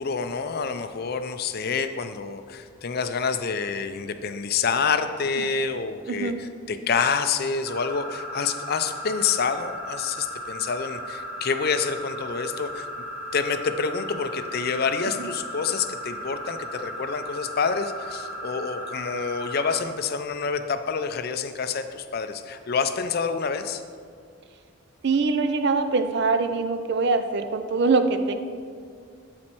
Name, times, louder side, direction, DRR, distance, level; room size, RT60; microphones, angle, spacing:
voice 1, 0.0-12.9 13.3-23.8, left 5 dB, 45° left, 9 dB, 0.4 m, -27 dB
sound 1, 7.6-19.8, equal, 10° right, 1.4 m, -36 dB
voice 2, 25.0-28.3, right 4 dB, 50° right, 8 dB, 0.5 m, -23 dB
12.0 x 4.2 x 4.4 m, 2.2 s
head